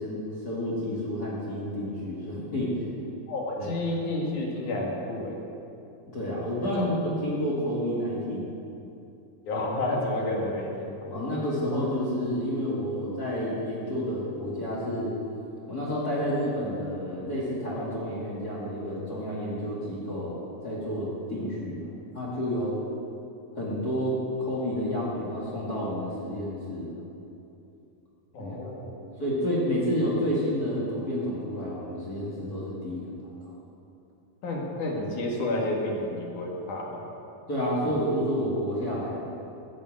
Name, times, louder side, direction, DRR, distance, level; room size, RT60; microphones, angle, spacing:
voice 1, 0.0-2.8 3.6-3.7 6.1-8.6 11.1-15.2 15.7-21.9 22.1-22.8 23.6-26.9 28.4-28.6 29.2-33.5 37.5-39.4, equal, 30° left, -5 dB, 2.6 m, -30 dB
voice 2, 3.3-5.4 6.6-6.9 9.5-11.2 28.3-29.0 34.4-37.0 37.8-38.0, left 1 dB, 75° left, -1 dB, 3.6 m, -30 dB
16.5 x 8.9 x 7.8 m, 2.7 s
omnidirectional pair, 3.5 m